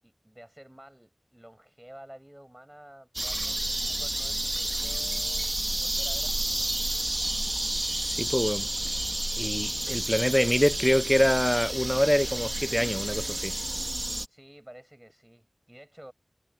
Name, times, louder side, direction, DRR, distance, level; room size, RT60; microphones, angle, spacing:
voice 1, 0.0-6.7 14.3-16.1, right 1 dB, 15° right, 7.8 m, -50 dB
sound 1, 3.1-14.3, right 1 dB, 40° right, 2.2 m, -30 dB
voice 2, 8.1-8.7 9.4-13.5, equal, 10° left, 0.6 m, -25 dB
wide cardioid pair, 45°, 0 cm